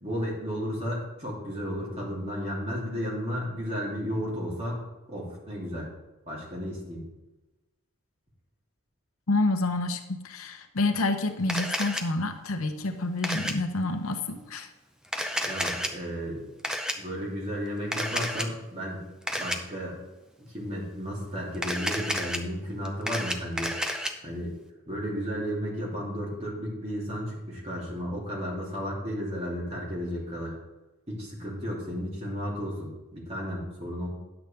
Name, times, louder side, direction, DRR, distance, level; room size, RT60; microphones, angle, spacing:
voice 1, 0.0-4.8 5.1-5.9 6.3-7.0 15.4-16.4 16.9-19.0 19.3-20.0 20.4-23.7 24.2-24.5 24.9-30.5 31.1-34.1, equal, 30° right, -4 dB, 2.9 m, -33 dB
voice 2, 9.3-14.7, left 2 dB, 80° left, 7 dB, 0.9 m, -28 dB
Camera, 11.5-12.0 13.2-13.5 15.0-15.9 16.6-16.9 17.9-18.5 19.3-19.6 21.5-22.4 22.9-24.1, equal, 5° right, 0.5 m, -30 dB
10.5 x 8.1 x 3.4 m, 1.1 s
head